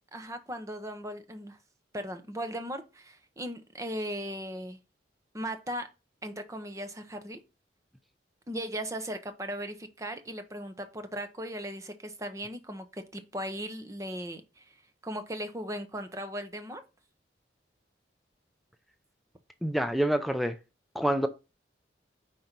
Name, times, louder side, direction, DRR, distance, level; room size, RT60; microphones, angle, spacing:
voice 1, 0.1-1.6 1.9-4.8 5.3-5.9 6.2-7.4 8.5-14.8 15.0-16.8, equal, 15° right, 0.8 m, -37 dB
voice 2, 19.6-20.5 20.9-21.3, right 1 dB, ahead, 0.4 m, -27 dB
5.2 x 4.3 x 5.8 m
head